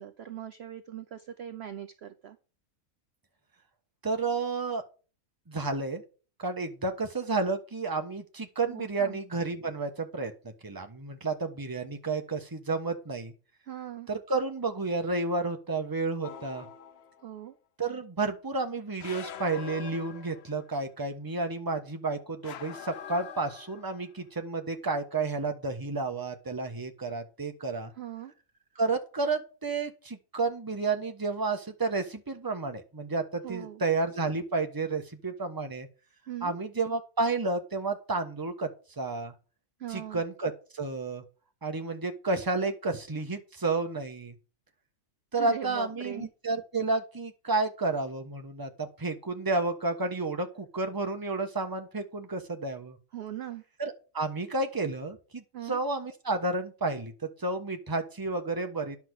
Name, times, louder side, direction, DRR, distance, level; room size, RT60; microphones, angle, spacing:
voice 1, 0.0-2.4 8.7-9.2 13.7-14.1 17.2-17.5 28.0-28.3 33.4-33.8 36.3-36.6 39.8-40.2 45.4-46.3 53.1-53.6 55.5-55.8, right 11 dB, 55° right, 8 dB, 0.8 m, -40 dB
voice 2, 4.0-4.8 5.5-6.0 6.4-13.3 14.1-16.7 17.8-27.9 28.8-35.9 36.4-38.7 39.0-39.3 39.9-41.2 41.6-44.3 45.3-53.0 53.8-57.1 57.4-59.0, right 3 dB, 15° right, 5 dB, 1.1 m, -31 dB
sound 1, 16.2-17.2 19.0-20.7 22.4-24.1, left 9 dB, 55° left, 0.8 m, -44 dB
10.5 x 5.9 x 6.4 m, 0.36 s
omnidirectional pair, 1.5 m